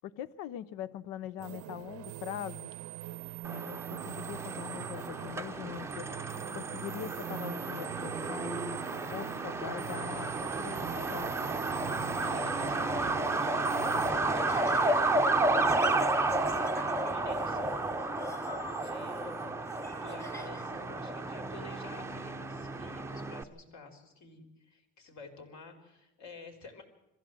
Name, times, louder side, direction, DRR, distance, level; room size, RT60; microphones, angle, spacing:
voice 1, 0.0-2.7 3.5-6.1 6.5-8.8 9.1-11.3, left 11 dB, 80° left, 18 dB, 0.9 m, -42 dB
sound 1, 1.4-14.1, right 16 dB, 65° right, 0.7 m, -43 dB
Truck, 3.4-23.4, right 2 dB, 10° right, 0.7 m, -32 dB
voice 2, 12.2-17.9 18.7-19.7 20.0-26.8, left 4 dB, 55° left, 4 dB, 4.1 m, -50 dB
Laughter, 14.0-20.8, left 1 dB, 10° left, 1.1 m, -47 dB
22.5 x 15.0 x 7.8 m, 0.96 s
cardioid pair, 135°, 33 cm